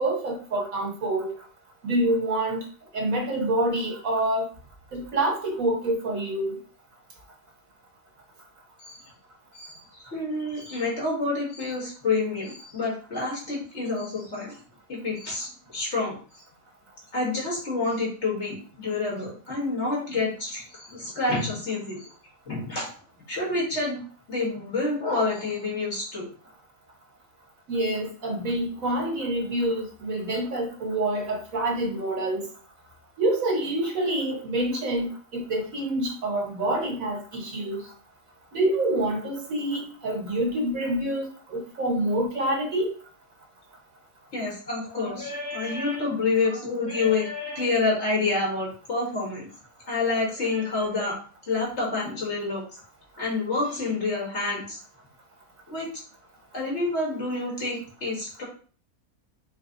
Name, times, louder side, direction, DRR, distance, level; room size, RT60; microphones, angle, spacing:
voice 1, 0.0-1.3 1.8-2.6 2.9-4.5 4.9-6.6 27.7-32.4 33.2-37.8 38.5-42.9, right 1 dB, 70° right, 1 dB, 1.5 m, -27 dB
voice 2, 9.5-14.6 14.9-16.4 17.1-22.1 22.5-22.9 23.3-24.0 24.3-26.3 44.3-49.5 49.9-51.2 51.5-52.6 53.2-54.8 55.7-55.9 56.5-58.4, left 3 dB, 50° left, -3 dB, 2.0 m, -28 dB
5.2 x 2.2 x 3.8 m, 0.42 s
omnidirectional pair, 1.5 m